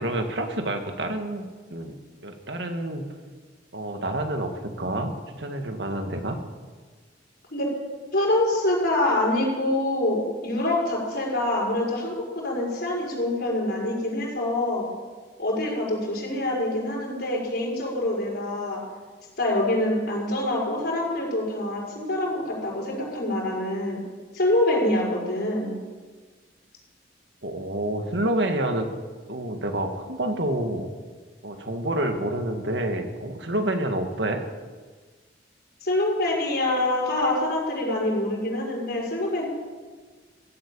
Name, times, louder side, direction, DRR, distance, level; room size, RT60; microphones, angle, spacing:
voice 1, 0.0-2.0 2.2-3.0 3.7-6.4 27.4-28.9 29.3-30.9 31.4-34.4, right 1 dB, 70° right, 5 dB, 1.8 m, -28 dB
voice 2, 8.1-14.9 15.4-18.8 19.4-24.0 24.3-25.8 35.8-39.4, left 1 dB, 60° left, -3 dB, 6.1 m, -25 dB
15.5 x 8.5 x 8.8 m, 1.4 s
head